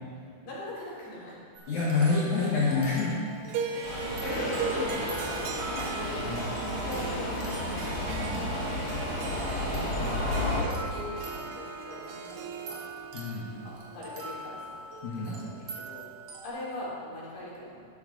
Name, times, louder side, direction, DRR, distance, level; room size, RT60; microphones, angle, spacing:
voice 1, 0.4-1.4 3.7-7.9 9.0-12.8 13.6-14.8 15.2-16.1 16.4-17.9, left 1 dB, 85° left, -8 dB, 5.7 m, -41 dB
sound 1, 1.5-16.5, right 1 dB, 50° right, 2.5 m, -45 dB
voice 2, 1.7-3.2 6.3-6.4 8.1-8.5 10.0-10.2 13.1-13.6 15.0-15.3, left 4 dB, 60° left, -5 dB, 2.2 m, -28 dB
Harp, 3.5-14.8, right 5 dB, 80° right, 2.0 m, -39 dB
Subway metro underground, 3.8-10.6, left 1 dB, 35° left, 1.6 m, -32 dB
13.0 x 11.5 x 3.9 m, 2.3 s
omnidirectional pair, 4.7 m